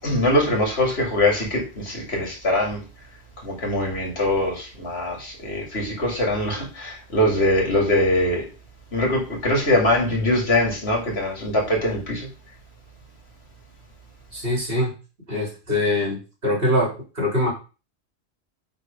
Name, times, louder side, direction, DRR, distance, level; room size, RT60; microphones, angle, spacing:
voice 1, 0.0-2.8 3.4-8.5 8.9-12.3, left 1 dB, 70° left, 3.0 m, -22 dB
voice 2, 14.3-14.9 15.3-17.5, left 1 dB, 60° right, 3.7 m, -23 dB
7.9 x 3.8 x 5.3 m
omnidirectional pair, 1.1 m